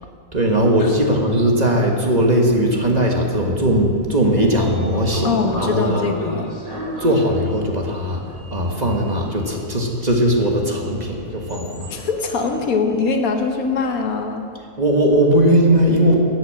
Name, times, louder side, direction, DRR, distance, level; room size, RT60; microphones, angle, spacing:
voice 1, 0.3-6.1 7.0-8.2 8.5-11.9 14.8-16.2, right 1 dB, 30° right, 0 dB, 1.4 m, -18 dB
Sliding door, 3.9-14.1, left 1 dB, 15° left, 2.7 m, -35 dB
voice 2, 5.2-6.5 11.9-14.4, left 4 dB, 80° left, 4 dB, 1.5 m, -22 dB
11.5 x 8.0 x 7.4 m, 2.4 s
omnidirectional pair, 1.5 m